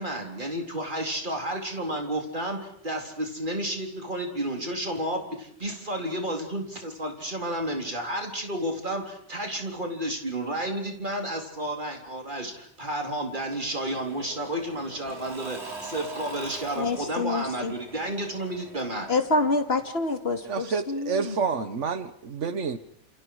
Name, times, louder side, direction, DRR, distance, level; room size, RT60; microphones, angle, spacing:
voice 1, 0.0-19.1, right 1 dB, 45° right, 2 dB, 4.1 m, -31 dB
Engine / Mechanisms / Drill, 13.5-20.2, right 3 dB, 65° right, 3.7 m, -43 dB
voice 2, 16.8-17.7 19.1-21.4, left 3 dB, 60° left, 6 dB, 2.6 m, -27 dB
voice 3, 20.4-22.8, right 5 dB, 85° right, 12 dB, 1.6 m, -29 dB
29.5 x 28.0 x 4.9 m, 0.68 s
omnidirectional pair, 1.2 m